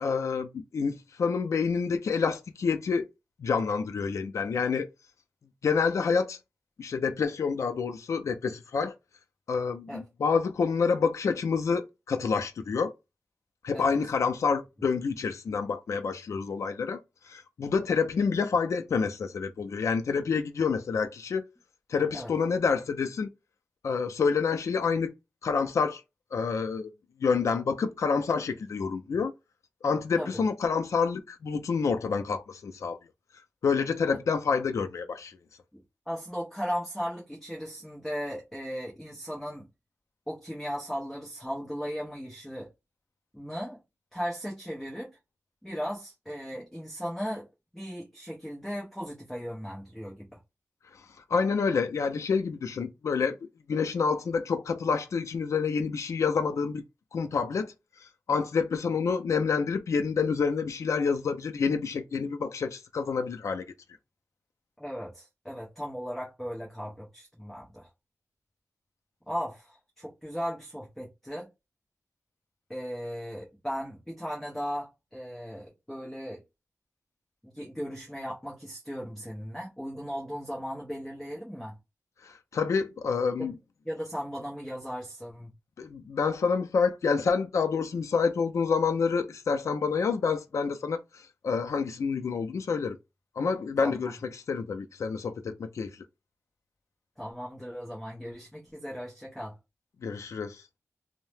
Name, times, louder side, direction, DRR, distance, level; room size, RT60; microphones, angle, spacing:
voice 1, 0.0-3.1 3.4-4.9 5.6-6.4 6.8-8.9 9.5-12.9 13.6-17.0 17.3-21.4 21.9-23.3 23.8-25.1 25.4-26.0 26.3-26.9 27.2-29.3 29.8-33.0 33.6-35.4 51.3-53.4 53.7-56.8 57.1-57.7 58.3-63.6 82.2-83.5 85.8-93.0 93.4-94.2 94.5-95.9 100.0-100.6, left 5 dB, 70° left, 0.4 m, -28 dB
voice 2, 35.7-39.7 40.3-42.7 43.3-43.8 44.1-45.2 45.6-47.5 47.7-50.4 64.8-67.9 69.3-71.5 72.7-76.4 77.4-81.8 83.4-83.5 83.8-85.5 93.8-94.1 97.2-99.6, equal, 5° left, 0.8 m, -37 dB
2.7 x 2.0 x 3.2 m
wide cardioid pair, 135°, 5 cm